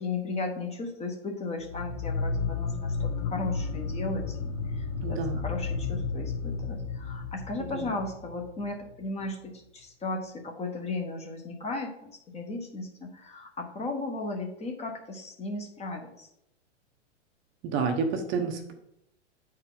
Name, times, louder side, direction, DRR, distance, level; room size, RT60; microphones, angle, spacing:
voice 1, 0.0-16.3, left 3 dB, 20° left, 2 dB, 1.1 m, -36 dB
sound 1, 1.6-8.9, left 4 dB, 40° left, 0.9 m, -32 dB
voice 2, 5.0-5.4 17.7-18.7, right 5 dB, 35° right, 5 dB, 0.9 m, -29 dB
9.0 x 4.5 x 3.9 m, 0.79 s
hypercardioid pair, 120°, 36 cm